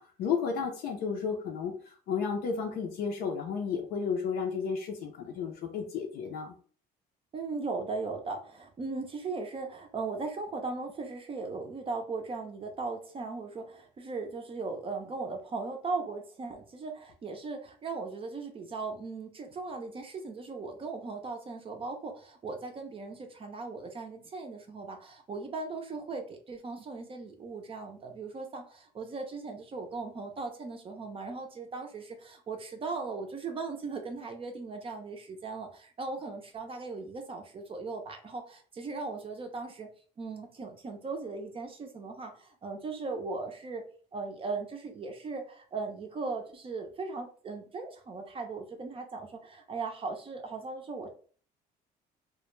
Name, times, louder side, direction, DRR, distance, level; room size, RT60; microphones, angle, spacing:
voice 1, 0.2-1.7 2.1-6.5, left 6 dB, 70° left, 1 dB, 0.5 m, -32 dB
voice 2, 7.3-39.9 40.2-43.8 44.1-51.1, right 3 dB, 35° right, 4 dB, 0.5 m, -38 dB
2.2 x 2.1 x 3.0 m, 0.42 s
cardioid pair, 110°, 17 cm